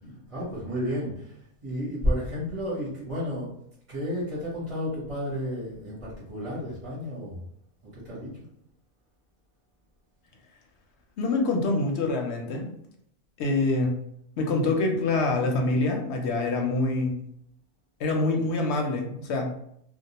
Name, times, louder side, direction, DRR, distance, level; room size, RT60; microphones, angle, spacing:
voice 1, 0.3-3.5 3.9-7.4 7.8-8.4, equal, 30° right, -8 dB, 0.7 m, -32 dB
voice 2, 11.2-12.7 13.4-14.0 14.4-17.2 18.0-19.5, left 2 dB, 65° left, 2 dB, 0.7 m, -25 dB
2.2 x 2.1 x 2.8 m, 0.71 s
omnidirectional pair, 1.4 m